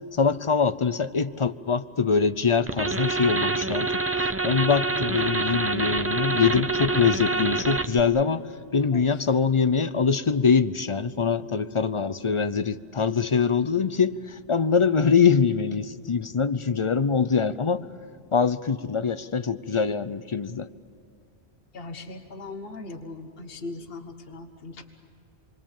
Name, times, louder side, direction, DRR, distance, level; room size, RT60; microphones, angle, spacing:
voice 1, 0.1-8.5 8.7-17.9 18.3-20.7, left 5 dB, 35° left, 13 dB, 0.6 m, -23 dB
sound 1, 2.7-8.0, right 3 dB, 15° right, 0.4 m, -26 dB
voice 2, 8.9-9.2 21.7-24.8, left 3 dB, 55° left, 6 dB, 1.6 m, -39 dB
28.0 x 23.0 x 7.3 m, 2.5 s
omnidirectional pair, 1.2 m